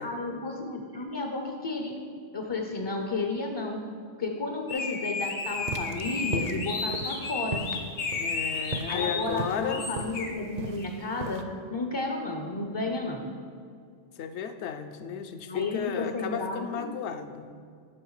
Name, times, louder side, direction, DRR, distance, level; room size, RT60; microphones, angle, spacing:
voice 1, 0.0-1.9 2.3-3.8 4.2-7.6 8.9-11.4 11.7-13.3 15.5-16.9, left 3 dB, 35° left, 3 dB, 0.4 m, -32 dB
sound 1, 4.7-9.3 9.7-10.3, left 4 dB, 90° left, 1.3 m, -33 dB
sound 2, 5.6-11.4, right 3 dB, 50° right, 0.6 m, -37 dB
voice 2, 8.1-9.8 14.2-17.5, left 7 dB, 70° left, 9 dB, 0.8 m, -34 dB
10.5 x 5.7 x 4.8 m, 2.2 s
omnidirectional pair, 1.3 m